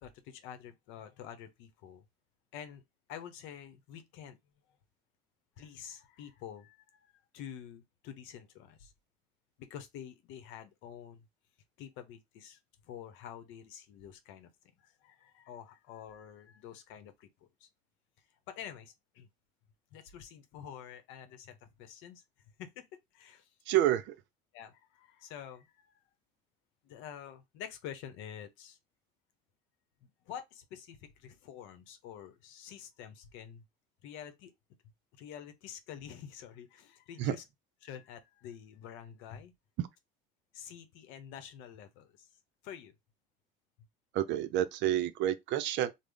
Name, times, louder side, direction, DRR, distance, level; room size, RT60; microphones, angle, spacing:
voice 1, 0.0-2.0 2.5-2.8 3.1-4.4 5.6-8.9 9.6-11.3 11.8-14.5 14.8-17.7 18.5-19.3 19.9-22.2 22.6-23.5 24.5-26.0 26.8-28.8 30.0-33.6 34.0-34.5 35.1-37.4 37.8-39.5 40.5-42.3 42.6-42.9, left 9 dB, 70° left, 0.7 m, -48 dB
voice 2, 23.7-24.1 37.2-37.4 39.8-39.9 44.1-45.9, right 12 dB, 65° right, 0.5 m, -29 dB
3.6 x 2.0 x 3.3 m
hypercardioid pair, 70°, 21 cm